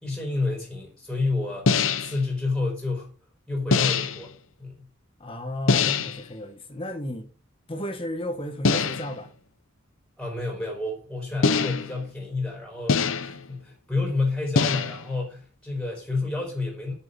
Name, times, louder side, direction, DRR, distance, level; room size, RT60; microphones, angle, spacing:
voice 1, 0.0-1.7 2.0-3.1 3.5-4.3 4.6-4.8 10.2-16.9, left 3 dB, 5° left, 3.7 m, -29 dB
sound 1, 1.7-2.2 3.7-4.3 5.7-6.2 8.6-9.2 11.4-12.0 12.9-13.5 14.6-15.1, left 5 dB, 80° left, 0.7 m, -23 dB
voice 2, 5.2-7.3 7.7-9.3, left 1 dB, 25° left, 1.6 m, -33 dB
6.8 x 6.7 x 7.7 m
head